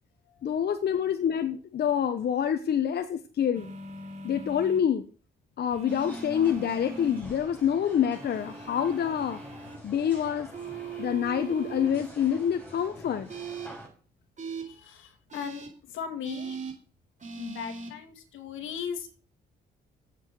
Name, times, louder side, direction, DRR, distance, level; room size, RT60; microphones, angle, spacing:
voice 1, 0.4-3.7 4.2-5.0 5.6-9.4 9.8-10.5 11.0-13.3, left 8 dB, 55° left, 9 dB, 1.1 m, -27 dB
sound 1, 3.5-4.8 5.7-7.2 8.1-9.8 10.5-11.9 13.3-13.7 14.4-14.6 15.3-15.7 16.2-16.7 17.2-17.9, right 4 dB, 40° right, 4.4 m, -39 dB
sound 2, 5.9-13.9, equal, 10° left, 5.5 m, -47 dB
voice 2, 14.6-16.6 17.4-19.2, left 7 dB, 80° left, 7 dB, 2.3 m, -38 dB
7.9 x 7.2 x 8.1 m, 0.40 s
cardioid pair, 90°, 20 cm